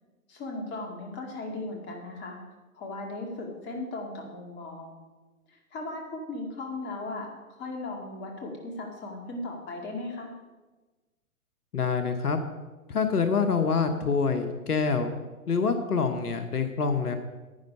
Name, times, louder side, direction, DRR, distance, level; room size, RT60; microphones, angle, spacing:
voice 1, 0.3-2.4 2.7-5.0 5.5-10.3, left 2 dB, 25° left, 1 dB, 2.2 m, -37 dB
voice 2, 11.7-12.4 12.9-15.1 15.5-17.2, left 5 dB, 80° left, 7 dB, 1.2 m, -26 dB
10.5 x 9.3 x 5.5 m, 1.2 s
figure-of-eight pair, 120°, 45 cm